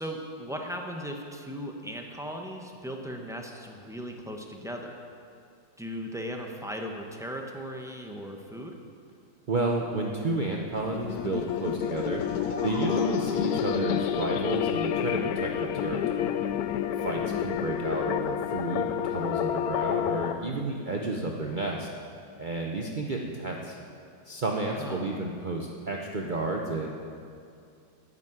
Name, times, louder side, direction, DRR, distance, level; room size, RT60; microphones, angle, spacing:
voice 1, 0.0-4.9 5.8-8.7 17.1-17.5 24.6-25.2, equal, 5° right, 1 dB, 0.4 m, -37 dB
voice 2, 9.5-12.2 12.6-16.4 17.0-21.9 22.4-23.8 24.2-26.9, right 2 dB, 55° right, 0 dB, 0.5 m, -31 dB
sound 1, 10.7-20.3, left 10 dB, 75° left, 0.8 m, -29 dB
sound 2, 12.0-13.8, left 1 dB, 20° right, 2.3 m, -41 dB
10.5 x 8.3 x 9.5 m, 2.4 s
omnidirectional pair, 2.1 m